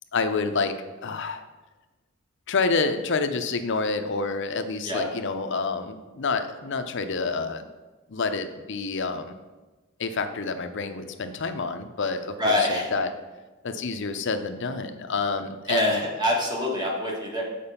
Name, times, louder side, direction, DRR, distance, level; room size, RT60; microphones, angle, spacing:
voice 1, 0.1-1.4 2.5-7.7 8.1-9.4 10.0-13.1 13.6-16.0, left 4 dB, 60° left, 8 dB, 0.6 m, -28 dB
voice 2, 12.4-12.9 15.7-17.4, left 1 dB, 20° right, -2 dB, 1.6 m, -25 dB
6.8 x 5.1 x 5.6 m, 1.2 s
head